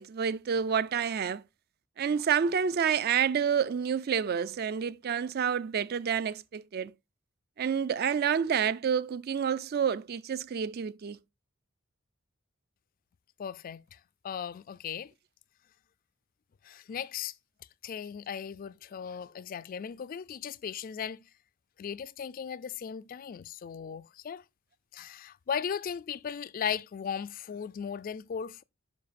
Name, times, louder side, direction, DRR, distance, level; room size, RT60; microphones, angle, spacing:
voice 1, 0.0-1.4 2.0-6.9 7.6-11.2, right 7 dB, 50° right, 0.4 m, -29 dB
voice 2, 13.4-14.0 14.2-15.1 16.6-17.3 17.8-21.2 21.8-24.4 24.9-28.6, left 7 dB, 45° left, 0.3 m, -37 dB
10.5 x 5.3 x 2.5 m
head